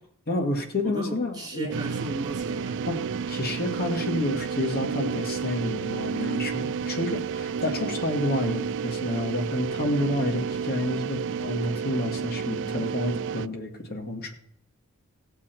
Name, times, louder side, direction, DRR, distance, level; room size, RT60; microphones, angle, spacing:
voice 1, 0.3-1.7 2.9-3.0 3.3-14.3, left 1 dB, 45° left, 3 dB, 1.9 m, -29 dB
voice 2, 0.8-3.2 13.3-13.6, right 2 dB, 20° right, -1 dB, 2.6 m, -36 dB
sound 1, 1.7-13.5, right 6 dB, 55° right, 0.3 m, -31 dB
17.0 x 7.4 x 4.5 m, 0.72 s
head